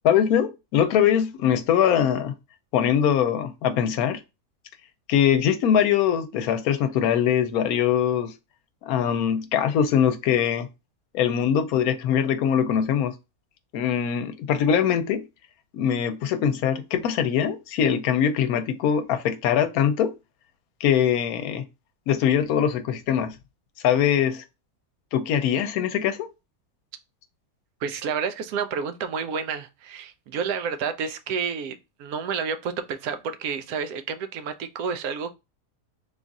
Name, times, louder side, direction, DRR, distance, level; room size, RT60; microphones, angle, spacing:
voice 1, 0.0-2.3 2.7-4.2 5.1-8.3 8.8-10.7 11.1-13.1 13.7-15.2 15.7-20.1 20.8-21.6 22.1-23.4 23.8-24.4 25.1-26.3, left 9 dB, 80° left, 1.1 m, -22 dB
voice 2, 27.8-35.3, right 6 dB, 85° right, 1.1 m, -30 dB
3.7 x 2.4 x 3.9 m
omnidirectional pair, 1.5 m